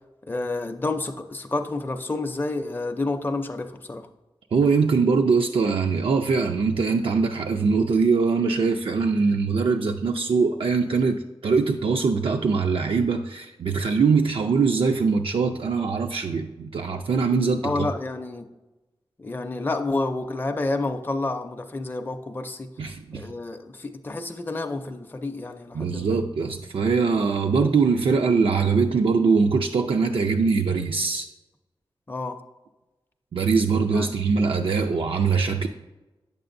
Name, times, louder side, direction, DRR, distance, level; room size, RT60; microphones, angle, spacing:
voice 1, 0.3-4.1 17.6-18.5 19.2-22.7 23.1-26.2 32.1-32.4 33.9-34.2, left 2 dB, 20° left, 5 dB, 0.4 m, -29 dB
voice 2, 4.5-17.9 22.8-23.3 25.7-31.3 33.3-35.7, right 4 dB, 70° right, 4 dB, 0.4 m, -22 dB
8.5 x 6.8 x 2.5 m, 1.1 s
wide cardioid pair, 95°, 9 cm